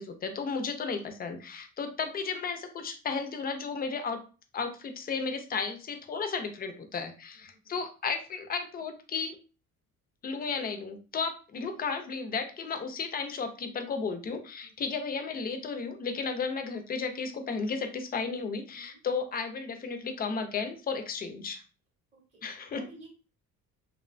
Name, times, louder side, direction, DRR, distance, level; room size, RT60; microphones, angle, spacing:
voice 1, 0.0-4.2 4.5-9.4 10.2-21.6 22.4-22.9, left 5 dB, 30° left, 7 dB, 0.4 m, -34 dB
voice 2, 22.7-23.1, right 1 dB, 20° right, 0 dB, 0.7 m, -53 dB
2.7 x 2.1 x 2.4 m, 0.34 s
cardioid pair, 125°, 33 cm